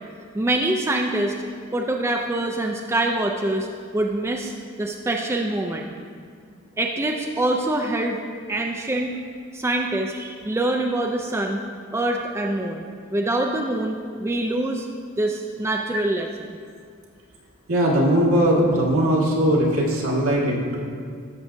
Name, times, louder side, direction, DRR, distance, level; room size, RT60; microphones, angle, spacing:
voice 1, 0.3-1.3 1.7-3.7 3.9-4.5 4.8-5.9 6.8-8.2 8.5-9.1 9.5-11.6 11.9-12.8 13.1-14.9 15.2-16.6, right 1 dB, 10° right, 1 dB, 0.3 m, -24 dB
voice 2, 17.7-20.9, equal, 80° right, -3 dB, 1.7 m, -20 dB
12.5 x 7.2 x 2.6 m, 2.2 s
head